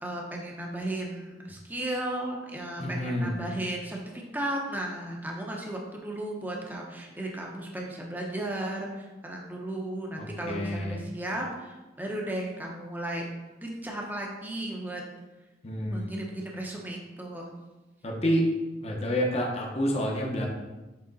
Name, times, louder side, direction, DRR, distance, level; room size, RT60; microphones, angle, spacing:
voice 1, 0.0-13.2 13.6-15.0 15.9-17.5, right 1 dB, 10° right, -1 dB, 0.9 m, -35 dB
voice 2, 2.8-3.4 10.2-11.0 15.6-16.2 18.0-18.5 18.8-20.5, equal, 35° left, -1 dB, 1.0 m, -28 dB
7.7 x 3.4 x 4.1 m, 1.1 s
head